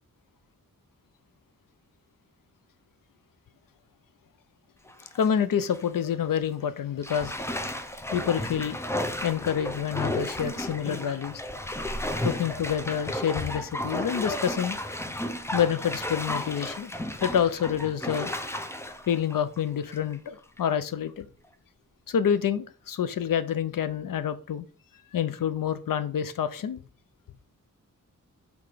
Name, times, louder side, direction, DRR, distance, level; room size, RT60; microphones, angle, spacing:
Bathtub (filling or washing), 4.9-5.3 5.7-5.8 7.0-20.1 20.6-20.7, left 1 dB, 10° left, 0.6 m, -33 dB
voice 1, 5.1-7.3 8.1-8.8 9.2-11.4 12.2-14.8 15.5-16.9 17.2-18.3 19.1-21.3 22.1-24.6 25.1-26.8, left 8 dB, 85° left, 0.6 m, -27 dB
5.9 x 3.5 x 4.9 m
wide cardioid pair, 100°, 32 cm